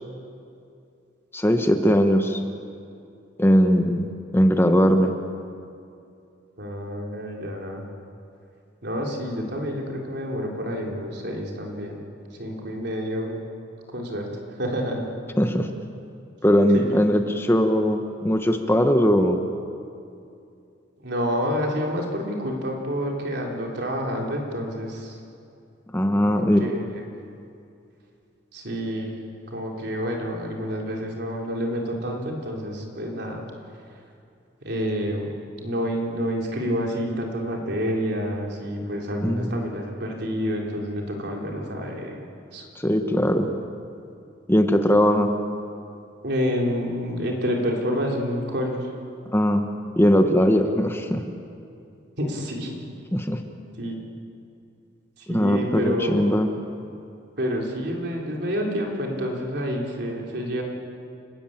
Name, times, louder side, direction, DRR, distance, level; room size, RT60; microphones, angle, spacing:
voice 1, 1.3-2.4 3.4-5.1 15.4-15.7 16.4-19.4 25.9-26.7 39.2-39.6 42.8-43.5 44.5-45.3 49.3-49.6 50.0-51.2 53.1-53.4 55.3-56.5, equal, 10° left, 6 dB, 1.1 m, -20 dB
voice 2, 6.6-7.9 8.8-12.0 12.4-13.4 13.9-14.3 14.6-15.1 16.7-17.0 21.0-25.2 26.2-26.8 28.5-33.4 34.6-35.3 35.6-42.2 42.5-42.7 46.2-48.8 52.2-52.8 53.8-54.0 55.3-56.3 57.4-60.6, equal, 60° right, 0 dB, 3.9 m, -28 dB
30.0 x 13.5 x 8.9 m, 2.5 s
head